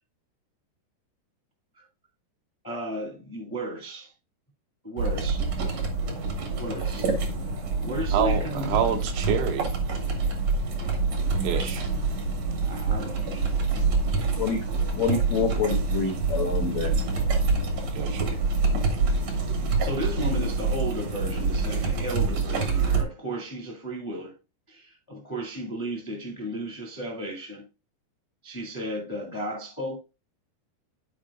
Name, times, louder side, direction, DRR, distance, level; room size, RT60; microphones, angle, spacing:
voice 1, 2.6-4.1 4.8-5.4 6.6-7.1 7.4-7.5 7.8-8.8 12.6-13.6 18.1-18.4 19.1-19.2 19.8-24.3 24.7-27.7 28.4-30.0, equal, 15° left, 0.8 m, -34 dB
sound 1, 5.0-23.0, right 4 dB, 65° right, 1.6 m, -26 dB
voice 2, 8.1-9.7 11.4-11.9 17.9-18.3, right 8 dB, 85° right, 3.4 m, -27 dB
voice 3, 14.4-14.7 15.0-16.9, left 5 dB, 75° left, 1.6 m, -27 dB
13.5 x 4.7 x 2.5 m
omnidirectional pair, 5.1 m